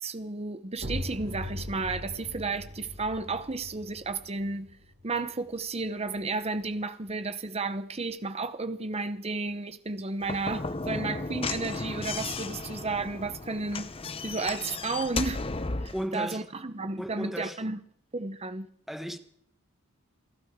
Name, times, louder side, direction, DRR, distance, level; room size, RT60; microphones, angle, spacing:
voice 1, 0.0-4.7 5.0-13.9 14.2-15.5 15.8-17.8 18.1-18.7, right 3 dB, 25° right, 0.9 m, -33 dB
sound 1, 0.8-6.3, left 1 dB, 45° right, 2.3 m, -40 dB
Slam / Knock, 10.2-16.1, left 3 dB, 25° left, 0.7 m, -34 dB
voice 2, 15.9-16.4 17.0-17.6 18.9-19.2, equal, ahead, 1.1 m, -34 dB
28.5 x 12.0 x 3.7 m
head